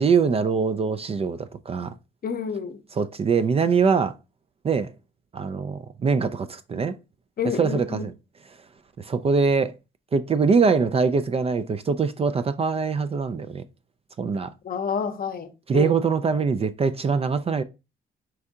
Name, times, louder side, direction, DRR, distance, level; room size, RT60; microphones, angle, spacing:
voice 1, 0.0-1.9 2.9-4.1 4.6-4.9 5.3-7.0 7.4-8.1 9.0-9.7 10.1-13.6 14.2-14.5 15.7-17.6, right 5 dB, 30° right, 0.3 m, -23 dB
voice 2, 2.2-2.8 7.4-8.0 14.6-15.9, left 6 dB, 50° left, 0.7 m, -29 dB
4.5 x 2.7 x 3.5 m
cardioid pair, 90°, 20 cm